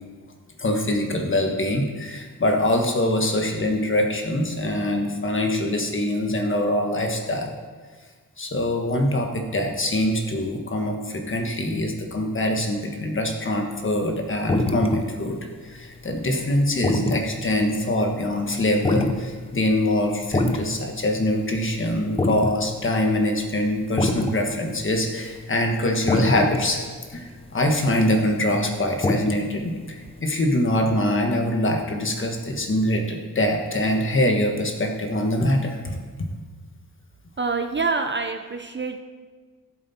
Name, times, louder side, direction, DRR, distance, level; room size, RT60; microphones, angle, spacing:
voice 1, 0.6-7.5 8.4-26.8 27.1-36.0, left 1 dB, 35° left, 3 dB, 1.4 m, -24 dB
sound 1, 13.8-14.2 14.5-15.1 15.5-20.9 21.2-21.3 21.6-22.5 22.8-22.9 23.1-23.2 23.8-24.4 24.7-28.7 29.0-29.6 29.9-30.0, left 2 dB, 15° left, 0.6 m, -24 dB
voice 2, 37.4-39.0, right 4 dB, 30° right, 5 dB, 0.5 m, -26 dB
16.5 x 7.5 x 4.3 m, 1.5 s
wide cardioid pair, 170°, 35 cm